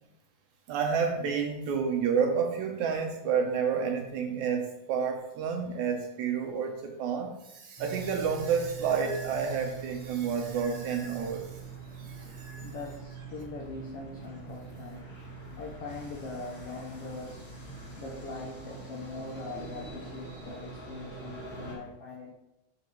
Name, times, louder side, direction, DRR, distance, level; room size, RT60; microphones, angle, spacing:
voice 1, 0.7-11.6 11.9-12.7, right 6 dB, 75° right, 3 dB, 1.9 m, -30 dB
sound 1, 7.8-21.7, right 4 dB, 20° left, 2.4 m, -44 dB
voice 2, 12.6-15.2 15.6-17.4 18.0-22.3, left 3 dB, 85° left, -1 dB, 1.3 m, -41 dB
11.0 x 5.2 x 3.0 m, 0.91 s
omnidirectional pair, 4.0 m